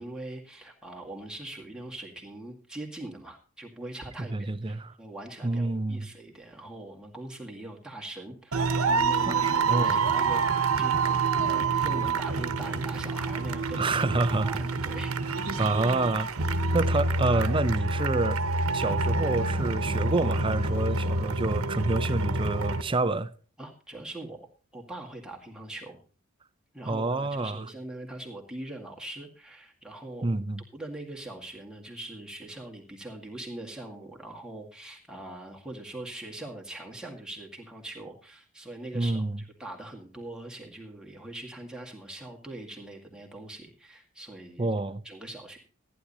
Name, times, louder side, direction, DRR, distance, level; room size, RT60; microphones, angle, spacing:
voice 1, 0.0-10.4 10.8-11.2 11.5-15.1 23.6-24.5 24.7-26.0 26.7-30.3 30.7-44.7 45.0-45.6, right 1 dB, 5° right, 2.0 m, -42 dB
voice 2, 4.3-4.9 5.4-6.1 9.3-10.1 13.8-14.6 15.6-16.3 16.7-18.4 18.7-23.3 26.9-27.6 30.2-30.6 38.9-39.4 44.6-45.0, right 2 dB, 25° right, 0.5 m, -28 dB
sound 1, 8.5-22.8, right 3 dB, 75° right, 1.0 m, -27 dB
14.5 x 10.0 x 4.1 m
head